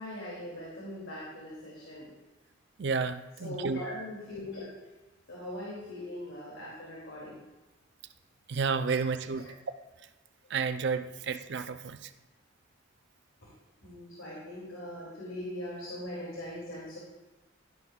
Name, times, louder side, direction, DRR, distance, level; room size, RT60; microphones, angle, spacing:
voice 1, 0.0-2.1 3.4-4.7 5.3-7.4 13.4-13.5 13.8-17.0, left 1 dB, 90° left, -6 dB, 2.7 m, -41 dB
voice 2, 2.8-3.8 8.5-9.5 10.5-12.1, right 5 dB, 60° right, 10 dB, 0.5 m, -31 dB
12.0 x 11.0 x 2.4 m, 1.1 s
head